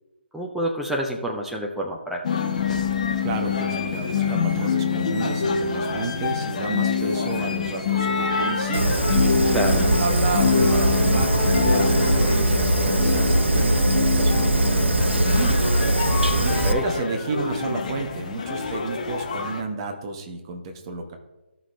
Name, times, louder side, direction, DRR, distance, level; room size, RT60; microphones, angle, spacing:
voice 1, 0.3-2.2 9.5-9.8 16.6-16.9, right 1 dB, ahead, 0 dB, 0.5 m, -27 dB
sound 1, 2.2-19.6, left 5 dB, 35° left, 1.0 m, -26 dB
voice 2, 3.2-9.3 9.7-15.7 16.3-21.2, right 3 dB, 25° right, 3 dB, 1.0 m, -31 dB
Fire, 8.7-16.7, right 1 dB, 70° right, 1.0 m, -21 dB
14.0 x 5.8 x 3.2 m, 1.1 s
figure-of-eight pair, 145°, 6 cm